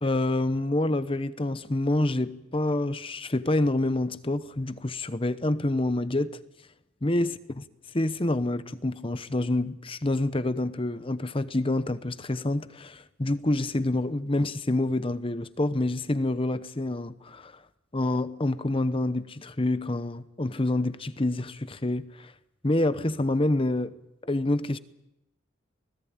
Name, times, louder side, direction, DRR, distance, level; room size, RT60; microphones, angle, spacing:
voice 1, 0.0-6.4 7.0-7.6 7.9-17.5 17.9-22.3 22.6-24.0 24.2-24.8, left 2 dB, 25° left, 0.8 m, -27 dB
25.0 x 18.5 x 8.8 m
head